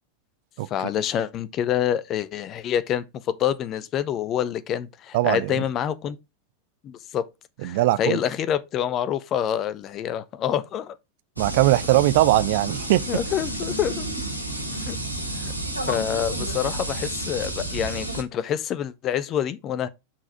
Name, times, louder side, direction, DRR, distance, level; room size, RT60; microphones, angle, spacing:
voice 1, 0.7-6.2 6.8-7.3 7.6-11.0 13.1-14.1 14.7-15.0 15.3-15.5 15.8-19.9, left 9 dB, 30° left, 0.7 m, -27 dB
voice 2, 5.1-5.6 7.6-8.2 11.4-13.0, right 16 dB, 50° right, 0.5 m, -20 dB
sound 1, 11.4-18.2, right 1 dB, 90° right, 1.4 m, -31 dB
5.8 x 4.9 x 4.0 m
figure-of-eight pair, 90°, 0 cm